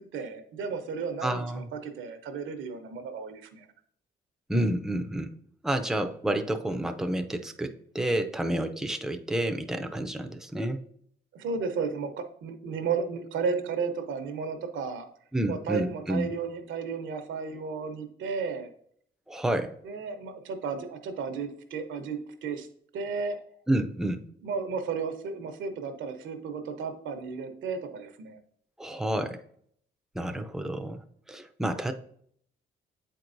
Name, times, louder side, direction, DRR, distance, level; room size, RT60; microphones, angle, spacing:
voice 1, 0.0-3.7 11.3-15.1 15.5-18.7 19.8-22.7 22.9-23.4 24.4-28.4, right 5 dB, 75° right, 7 dB, 0.9 m, -33 dB
voice 2, 1.2-1.7 4.5-5.3 5.6-10.8 15.3-16.3 19.3-19.7 23.7-24.2 28.8-29.4 30.1-31.0 31.3-31.9, right 1 dB, ahead, 7 dB, 0.5 m, -29 dB
7.9 x 4.6 x 2.6 m, 0.65 s
cardioid pair, 90°, 20 cm